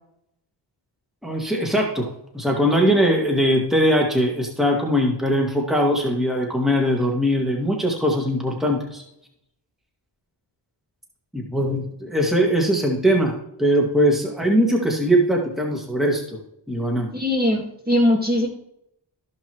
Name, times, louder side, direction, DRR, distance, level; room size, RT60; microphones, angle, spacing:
voice 1, 1.2-2.1 2.3-9.0 11.3-13.3 13.6-16.4 16.7-17.1, equal, ahead, 0 dB, 2.1 m, -21 dB
voice 2, 17.1-18.5, left 1 dB, 20° right, -1 dB, 1.9 m, -20 dB
14.0 x 5.7 x 3.1 m, 0.77 s
cardioid pair, 55°, 48 cm